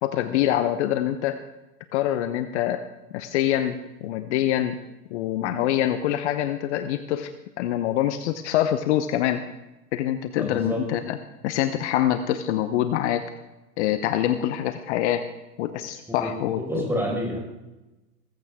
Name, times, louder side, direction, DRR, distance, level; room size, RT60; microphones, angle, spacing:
voice 1, 0.0-1.4 1.9-2.8 3.1-4.8 5.1-7.3 7.6-9.4 9.9-11.2 11.4-13.2 13.8-15.3 15.6-16.6, left 12 dB, 50° left, 10 dB, 1.0 m, -25 dB
voice 2, 10.4-10.8 16.2-17.4, equal, 5° right, -2 dB, 5.0 m, -28 dB
16.5 x 15.0 x 3.6 m, 1.0 s
hypercardioid pair, 120°, 43 cm